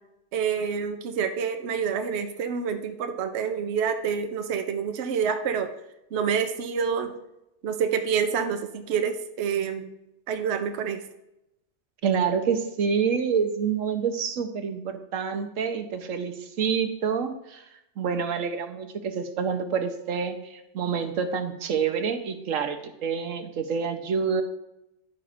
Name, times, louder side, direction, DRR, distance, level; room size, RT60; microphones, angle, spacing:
voice 1, 0.3-5.7 6.1-7.1 7.6-9.9 10.3-11.0, right 7 dB, 60° right, 7 dB, 0.9 m, -27 dB
voice 2, 12.0-17.6 18.0-24.4, right 6 dB, 80° right, 7 dB, 1.2 m, -27 dB
11.0 x 9.2 x 2.5 m, 0.86 s
omnidirectional pair, 1.3 m